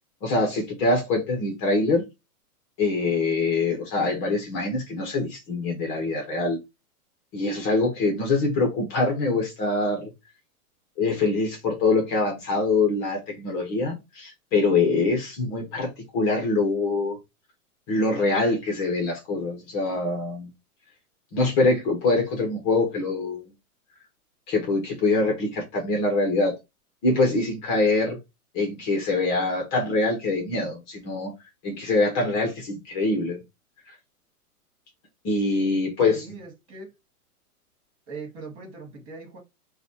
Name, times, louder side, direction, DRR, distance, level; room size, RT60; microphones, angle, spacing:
voice 1, 0.2-2.0 2.8-6.6 7.3-10.1 11.0-17.2 17.9-20.5 21.3-23.4 24.5-26.6 27.0-28.2 28.5-31.3 31.6-33.4 35.2-36.4, left 3 dB, 30° left, 0.9 m, -24 dB
voice 2, 36.0-36.9 38.1-39.4, right 4 dB, 35° right, 1.8 m, -40 dB
5.9 x 2.4 x 2.7 m
hypercardioid pair, 145°, 45 cm